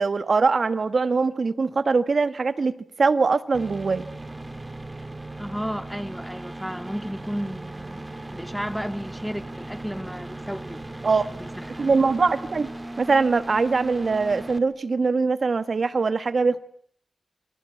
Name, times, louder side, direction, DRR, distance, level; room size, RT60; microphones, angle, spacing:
voice 1, 0.0-2.7 3.0-4.0 11.0-11.2 11.8-12.7 13.0-16.6, right 4 dB, 70° right, 1.6 m, -22 dB
sound 1, 3.5-14.6, right 1 dB, 25° right, 2.4 m, -37 dB
voice 2, 5.4-11.9, equal, ahead, 2.2 m, -34 dB
28.0 x 25.0 x 8.7 m
wide cardioid pair, 65°, 0 cm